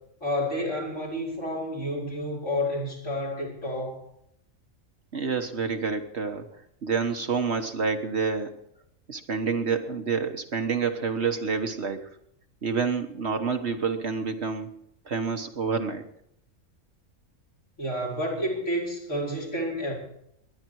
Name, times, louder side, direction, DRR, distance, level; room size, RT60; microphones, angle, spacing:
voice 1, 0.2-4.0 17.8-19.9, left 1 dB, 60° left, -3 dB, 5.3 m, -30 dB
voice 2, 5.1-6.5 6.8-8.5 9.1-12.1 12.6-14.7 15.0-16.0, right 5 dB, 55° right, 6 dB, 1.5 m, -28 dB
20.0 x 11.0 x 4.7 m, 0.73 s
omnidirectional pair, 1.4 m